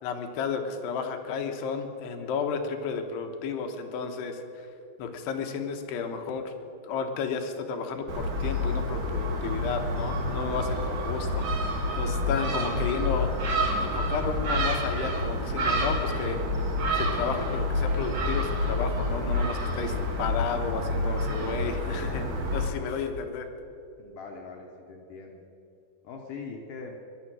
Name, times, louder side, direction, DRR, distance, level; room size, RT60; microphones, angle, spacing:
voice 1, 0.0-4.7 5.0-6.5 6.8-11.5 11.9-13.3 13.8-16.4 16.9-22.3 22.5-23.5, left 6 dB, 85° left, 5 dB, 3.2 m, -32 dB
Gull seagull, 8.1-22.7, left 1 dB, 50° right, 2.5 m, -28 dB
voice 2, 24.0-25.5 26.0-26.9, left 4 dB, 70° left, 1 dB, 2.2 m, -42 dB
19.5 x 11.5 x 6.2 m, 2.7 s
omnidirectional pair, 4.7 m